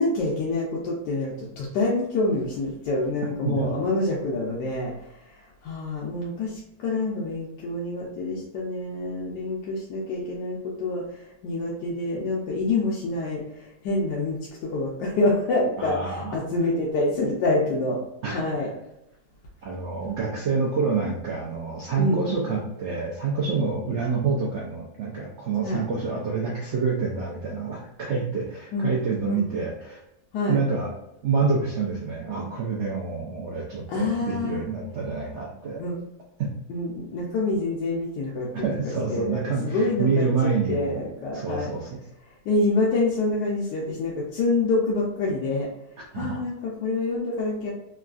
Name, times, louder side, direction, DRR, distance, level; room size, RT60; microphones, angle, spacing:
voice 1, 0.0-18.0 18.3-18.7 21.9-22.2 23.8-24.0 25.6-25.8 28.7-28.9 29.3-29.5 30.3-30.6 33.9-34.6 35.8-36.0 36.7-41.7 42.4-45.7 46.1-47.7, left 2 dB, 85° left, -4 dB, 1.3 m, -27 dB
voice 2, 15.8-16.4 18.2-18.4 19.6-30.0 30.5-30.9 31.2-35.8 36.4-36.5 38.5-41.0 41.3-41.9 46.1-46.4, right 4 dB, 80° right, -3 dB, 0.6 m, -27 dB
3.5 x 2.3 x 2.4 m, 0.87 s
omnidirectional pair, 1.8 m